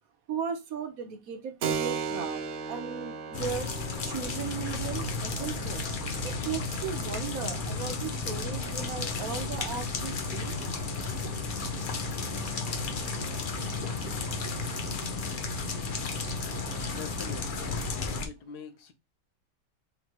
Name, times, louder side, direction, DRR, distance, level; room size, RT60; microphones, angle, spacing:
voice 1, 0.3-2.4 2.7-3.7 4.1-5.8 6.2-10.5, right 7 dB, 65° right, 1.1 m, -36 dB
Keyboard (musical), 1.6-9.8, right 6 dB, 85° right, 0.6 m, -38 dB
sound 1, 3.3-18.3, left 5 dB, 90° left, 0.4 m, -34 dB
sound 2, 4.4-17.9, right 4 dB, 45° right, 1.4 m, -41 dB
voice 2, 16.9-17.7 18.2-18.9, left 6 dB, 70° left, 1.2 m, -43 dB
3.6 x 3.2 x 4.3 m
omnidirectional pair, 1.9 m